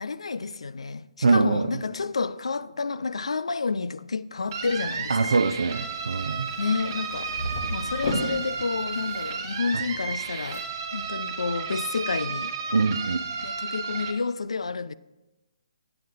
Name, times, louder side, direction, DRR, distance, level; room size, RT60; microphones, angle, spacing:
voice 1, 0.0-5.4 6.6-7.3 7.7-12.5 13.4-14.9, left 4 dB, 90° left, 0.4 m, -30 dB
voice 2, 1.2-1.8 5.1-6.5 9.7-9.8 12.7-13.2, right 4 dB, 85° right, 0.4 m, -23 dB
sound 1, 4.4-10.6, left 1 dB, 50° left, 1.4 m, -37 dB
sound 2, 4.5-14.1, right 5 dB, 35° right, 1.1 m, -33 dB
8.4 x 7.7 x 3.9 m
hypercardioid pair, 150°, 3 cm